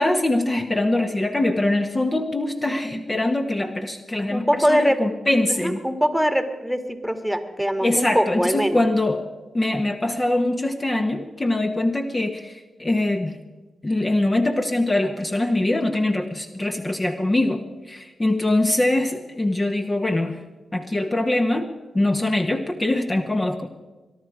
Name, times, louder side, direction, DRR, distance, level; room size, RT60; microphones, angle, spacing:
voice 1, 0.0-5.8 7.8-9.2 9.5-13.4 13.8-17.6 17.9-20.4 20.7-21.7 21.9-23.7, left 1 dB, 30° left, 5 dB, 1.3 m, -23 dB
voice 2, 4.3-5.0 5.5-8.8, equal, ahead, 8 dB, 1.9 m, -22 dB
22.0 x 11.5 x 5.0 m, 1.2 s
supercardioid pair, 40°, 0 cm